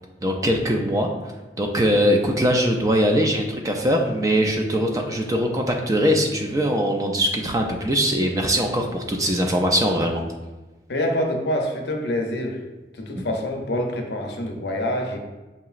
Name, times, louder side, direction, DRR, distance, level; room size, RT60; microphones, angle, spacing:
voice 1, 0.2-1.1 1.6-10.2, equal, 20° right, 2 dB, 0.3 m, -21 dB
voice 2, 10.9-12.6 12.9-15.2, left 1 dB, 65° left, 2 dB, 0.6 m, -26 dB
5.4 x 2.9 x 2.4 m, 1.2 s
head